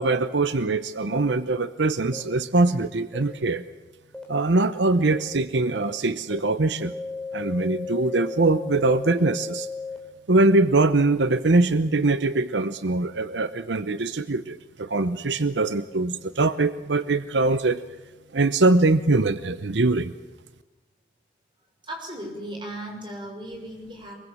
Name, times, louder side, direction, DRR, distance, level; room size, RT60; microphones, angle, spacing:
voice 1, 0.0-3.6 4.3-6.9 7.3-9.7 10.3-17.8 18.3-20.1, right 2 dB, 85° right, 12 dB, 0.9 m, -22 dB
sound 1, 1.1-1.2 2.1-2.2 3.1-3.2 4.1-4.2 5.1-5.2 5.8-5.9 6.3-6.4 6.8-10.0, left 4 dB, 5° left, 4.4 m, -34 dB
voice 2, 21.8-24.1, right 1 dB, 25° right, 2 dB, 6.2 m, -36 dB
23.5 x 22.5 x 7.4 m, 1.2 s
head